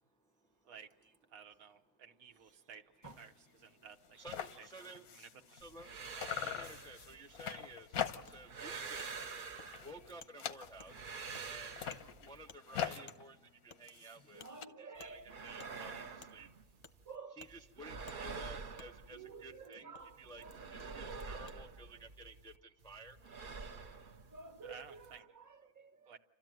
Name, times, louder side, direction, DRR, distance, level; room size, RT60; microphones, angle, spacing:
voice 1, 0.0-0.7 2.5-2.7 4.1-5.9 6.3-9.4 9.8-11.8 12.2-14.4 14.8-16.5 17.4-20.4 20.7-23.2, right 2 dB, 5° left, 0.5 m, -54 dB
voice 2, 1.3-2.8 3.2-5.6 24.6-25.3 26.1-26.2, right 7 dB, 70° right, 1.3 m, -55 dB
sound 1, 3.0-3.3 3.6-3.7 3.9-5.9 6.2-8.5 8.9-9.2 9.6-11.1 11.6-14.7, left 9 dB, 85° left, 1.4 m, -43 dB
sound 2, 5.6-7.8 8.2-10.2 10.6-12.6 15.0-17.2 17.4-19.7 20.0-22.6 22.8-25.2, right 4 dB, 45° right, 0.8 m, -48 dB
Wood, 8.3-8.4 9.0-9.1 9.6-9.7 10.2-10.3 10.8-10.9 11.3-11.4 11.9-12.0 12.5-12.6 13.1-13.2 13.7-13.8 14.4-14.5 15.0-15.1 15.6-15.7 16.2-16.3 16.8-17.0 17.4-17.5 18.1-18.2 18.8-18.9 19.9-20.0 20.8-20.9 21.5-21.6, left 4 dB, 35° left, 0.8 m, -55 dB
voice 3, 14.3-15.3 17.0-17.4 19.1-21.6 24.3-26.1, right 4 dB, 15° right, 0.9 m, -52 dB
30.0 x 13.5 x 9.0 m
omnidirectional pair, 1.5 m